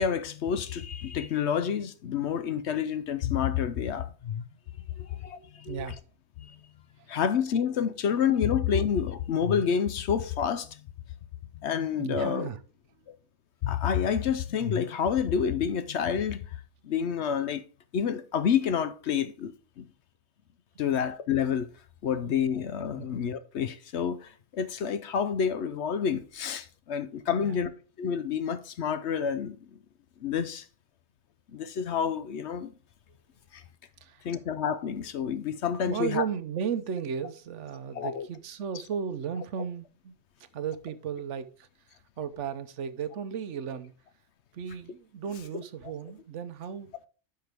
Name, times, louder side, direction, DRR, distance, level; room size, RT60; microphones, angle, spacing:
voice 1, 0.0-4.4 5.0-5.8 6.5-6.6 7.1-10.7 11.6-12.5 13.6-16.4 16.8-17.6 17.9-19.8 20.8-21.7 22.0-27.7 28.0-29.6 30.2-30.6 31.5-32.7 33.5-33.6 34.2-36.2 38.0-38.3, left 7 dB, 60° left, 0.9 m, -28 dB
voice 2, 5.3-6.0 7.0-7.1 12.0-12.6 23.0-23.1 27.3-27.7 34.0-34.3 35.8-40.1 40.4-41.7 42.2-43.9 44.5-46.9, right 7 dB, 65° right, 1.0 m, -35 dB
10.5 x 5.8 x 3.4 m
omnidirectional pair, 1.4 m